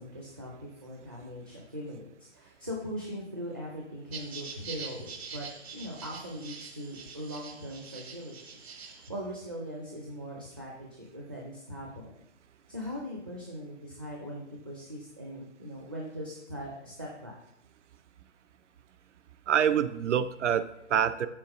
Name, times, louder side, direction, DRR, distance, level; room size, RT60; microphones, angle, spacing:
voice 1, 0.0-5.5 5.7-8.3 8.8-12.1 12.7-17.4, equal, 20° right, -2 dB, 0.4 m, -40 dB
sound 1, 4.1-9.1, right 5 dB, 60° right, 1.2 m, -44 dB
voice 2, 19.5-21.3, right 8 dB, 75° right, 13 dB, 0.7 m, -26 dB
7.6 x 4.0 x 5.0 m, 0.83 s
hypercardioid pair, 165°, 36 cm